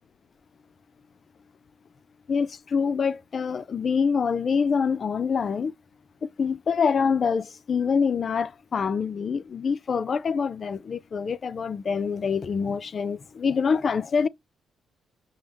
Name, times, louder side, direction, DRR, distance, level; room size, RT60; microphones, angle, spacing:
voice 1, 2.3-5.7 6.2-14.3, left 6 dB, 45° left, 0.4 m, -25 dB
6.1 x 2.0 x 3.3 m
cardioid pair, 90°, 0 cm